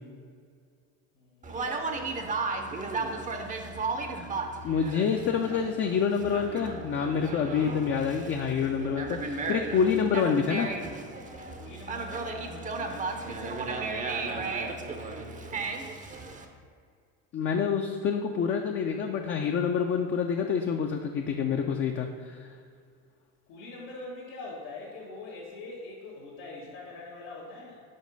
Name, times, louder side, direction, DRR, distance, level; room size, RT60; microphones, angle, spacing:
voice 1, 1.1-2.5 11.2-15.6 23.5-27.8, left 2 dB, 90° left, -8 dB, 1.3 m, -44 dB
Conversation, 1.4-16.4, right 3 dB, 20° right, 0.5 m, -35 dB
voice 2, 4.6-10.7 17.3-22.5, left 6 dB, 30° left, 3 dB, 0.4 m, -27 dB
5.2 x 3.6 x 5.3 m, 2.1 s
supercardioid pair, 90°, 40 cm